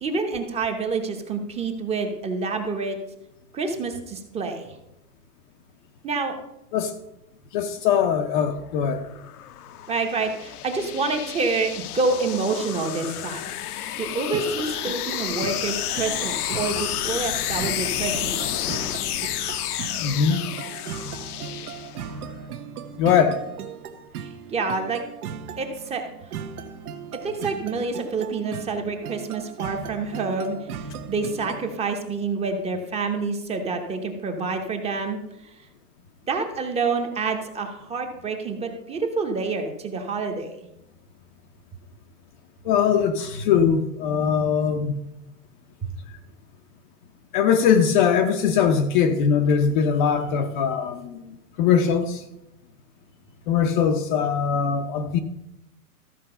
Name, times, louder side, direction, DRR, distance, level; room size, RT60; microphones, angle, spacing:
voice 1, 0.0-3.0 3.5-4.8 6.0-6.3 9.9-18.4 24.2-25.0 25.6-26.1 27.2-30.6 31.1-35.2 36.3-40.5, right 4 dB, 15° right, 0.9 m, -27 dB
voice 2, 7.5-9.0 20.0-20.4 23.0-23.5 42.6-45.0 46.1-46.2 47.3-52.2 53.5-55.2, left 7 dB, 35° left, 0.6 m, -21 dB
sound 1, 8.8-22.3, left 12 dB, 70° left, 0.8 m, -31 dB
sound 2, 14.3-31.8, right 7 dB, 70° right, 1.3 m, -37 dB
13.5 x 4.7 x 6.7 m
hypercardioid pair, 150°, 46 cm